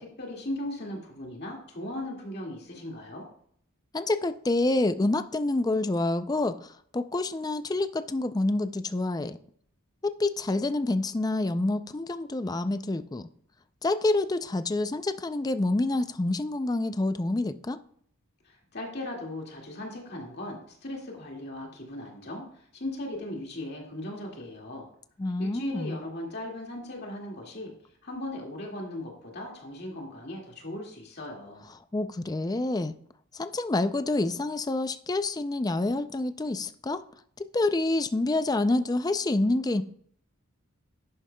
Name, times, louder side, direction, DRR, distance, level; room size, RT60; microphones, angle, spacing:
voice 1, 0.0-3.2 18.4-24.9 25.4-27.7 28.0-31.7, left 1 dB, 50° left, 2.1 m, -38 dB
voice 2, 3.9-9.4 10.0-13.3 13.8-17.8 25.2-26.0 31.9-32.9 33.3-37.0 37.5-39.8, left 2 dB, 15° left, 0.4 m, -27 dB
11.0 x 9.2 x 2.2 m
head